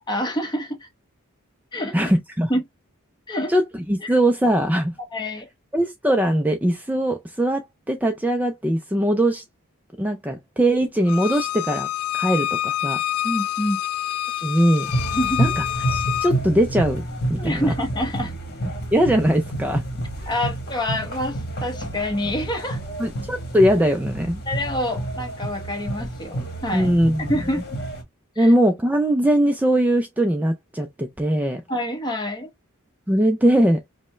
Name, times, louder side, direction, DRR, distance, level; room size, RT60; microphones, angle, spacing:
voice 1, 0.1-0.9 1.7-1.9 2.5-2.6 3.3-3.5 4.0-4.1 5.1-5.5 13.2-13.8 15.1-15.4 17.4-18.3 20.3-22.8 24.5-26.9 27.2-27.8 28.4-28.5 31.7-32.5, left 1 dB, 20° left, 0.9 m, -27 dB
voice 2, 1.9-2.5 3.5-3.6 3.9-4.9 5.7-9.4 10.0-11.9 12.1-13.0 14.4-14.9 15.4-17.0 17.3-17.7 18.9-19.8 23.0-24.4 26.7-27.3 28.4-31.6 33.1-33.8, right 1 dB, 5° right, 0.3 m, -20 dB
Bowed string instrument, 11.1-16.3, left 13 dB, 85° left, 0.3 m, -27 dB
sound 1, 14.9-28.0, right 1 dB, 50° left, 1.2 m, -29 dB
5.2 x 2.1 x 3.1 m
head